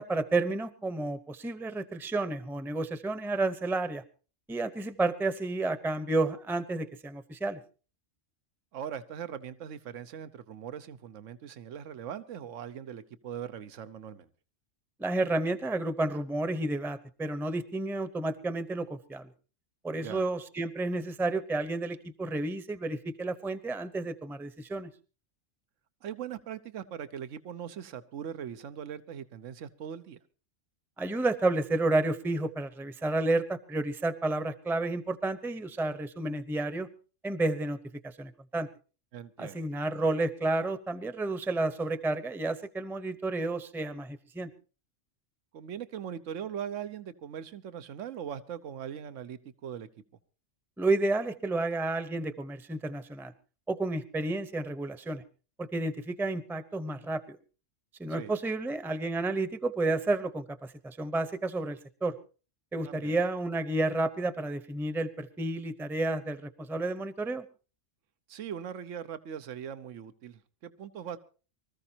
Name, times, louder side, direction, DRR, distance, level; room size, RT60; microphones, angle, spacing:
voice 1, 0.0-4.0 4.5-7.6 15.0-19.3 19.8-24.9 31.0-36.9 37.2-37.8 38.0-38.7 39.4-44.5 50.8-53.3 53.7-55.2 55.6-57.4 58.0-62.2 62.7-67.5, right 2 dB, ahead, 12 dB, 0.7 m, -31 dB
voice 2, 8.7-14.3 20.0-20.3 26.0-30.2 39.1-39.7 45.5-49.9 58.1-58.3 62.8-63.2 68.3-71.2, right 8 dB, 80° right, 12 dB, 1.2 m, -40 dB
24.5 x 14.5 x 2.8 m, 0.36 s
omnidirectional pair, 1.3 m